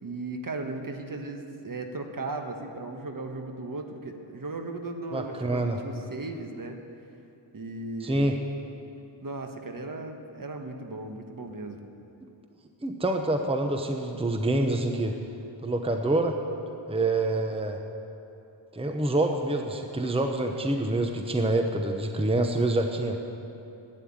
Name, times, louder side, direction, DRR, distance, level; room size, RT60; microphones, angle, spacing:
voice 1, 0.0-6.8 7.5-8.3 9.2-11.9, right 2 dB, 45° right, 5 dB, 1.2 m, -36 dB
voice 2, 5.1-5.8 8.0-8.4 12.8-15.1 15.6-16.4 16.9-17.8 18.7-23.2, right 2 dB, 10° right, 4 dB, 0.9 m, -26 dB
11.5 x 9.2 x 8.7 m, 2.8 s
wide cardioid pair, 85°, 47 cm